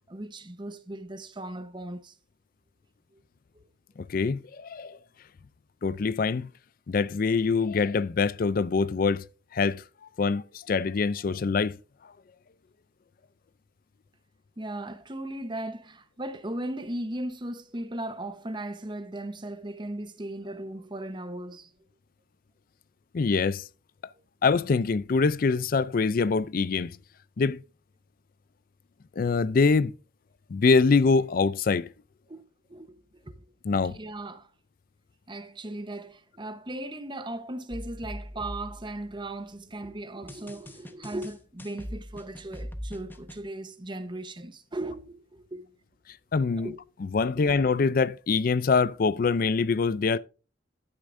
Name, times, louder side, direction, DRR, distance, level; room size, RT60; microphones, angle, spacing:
voice 1, 0.1-2.1 3.1-3.2 14.6-21.7 32.3-33.5 33.8-34.5 35.3-45.7 46.6-46.8 47.3-47.5, right 1 dB, 25° right, 1.0 m, -37 dB
voice 2, 4.0-5.0 5.8-6.5 6.9-9.3 9.5-9.8 10.2-11.8 23.1-23.6 24.4-27.0 27.4-27.6 29.2-29.9 30.5-31.9 33.7-34.0 46.3-46.7 47.1-50.2, left 4 dB, 50° left, 0.4 m, -24 dB
sound 1, 37.7-39.5 40.3-43.4, equal, 10° left, 0.9 m, -41 dB
12.0 x 9.7 x 2.6 m
head